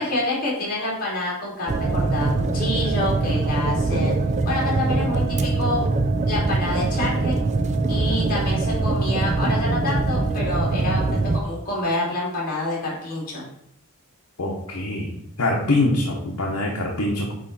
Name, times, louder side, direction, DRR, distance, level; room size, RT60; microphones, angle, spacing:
voice 1, 0.0-4.2 4.4-5.8 6.3-7.4 7.9-13.4, left 2 dB, 40° left, -4 dB, 2.7 m, -27 dB
sound 1, 1.7-11.4, right 3 dB, 30° right, 0.4 m, -22 dB
voice 2, 14.4-15.1 15.4-17.3, left 2 dB, 75° left, -3 dB, 1.1 m, -23 dB
8.6 x 3.3 x 4.2 m, 0.76 s
head